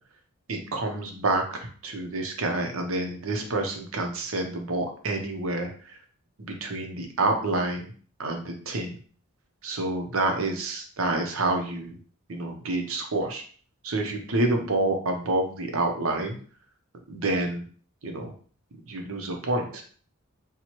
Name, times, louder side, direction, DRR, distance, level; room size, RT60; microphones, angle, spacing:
voice 1, 0.5-6.0 6.5-7.9 8.2-8.9 9.6-12.0 12.3-13.4 13.8-16.4 17.1-17.6 18.0-18.3 18.9-19.8, right 2 dB, 70° right, 3 dB, 0.8 m, -28 dB
4.4 x 2.3 x 2.9 m, 0.44 s
head